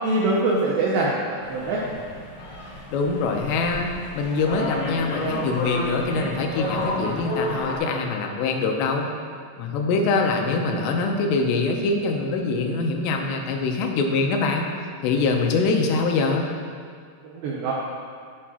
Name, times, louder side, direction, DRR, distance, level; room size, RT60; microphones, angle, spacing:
voice 1, 0.0-1.8 17.2-17.7, right 2 dB, 85° right, -3 dB, 2.0 m, -23 dB
sound 1, 1.4-7.8, left 1 dB, 60° left, 3.5 m, -31 dB
voice 2, 2.9-9.1 9.6-14.7 15.0-16.5, left 3 dB, 85° left, 2 dB, 2.9 m, -24 dB
13.5 x 5.0 x 2.9 m, 2.1 s
omnidirectional pair, 5.0 m